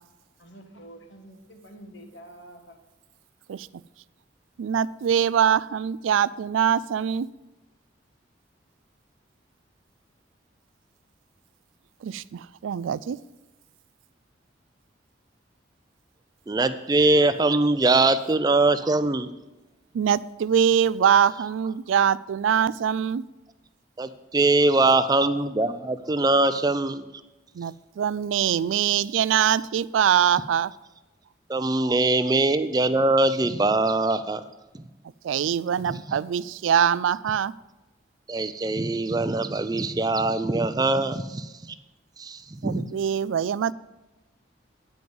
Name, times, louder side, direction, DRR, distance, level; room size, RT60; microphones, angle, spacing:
voice 1, 0.4-2.8, right 1 dB, 75° left, 4 dB, 1.5 m, -47 dB
voice 2, 4.6-7.3 12.0-13.2 19.9-23.2 27.6-30.7 35.2-37.5 42.6-43.7, right 8 dB, 90° right, 19 dB, 0.3 m, -23 dB
voice 3, 16.5-19.3 24.0-27.0 31.5-34.4 34.7-34.8 36.1-36.2 38.3-41.7 42.2-42.9, right 2 dB, 20° right, 11 dB, 0.4 m, -22 dB
9.2 x 5.3 x 7.7 m, 1.0 s
head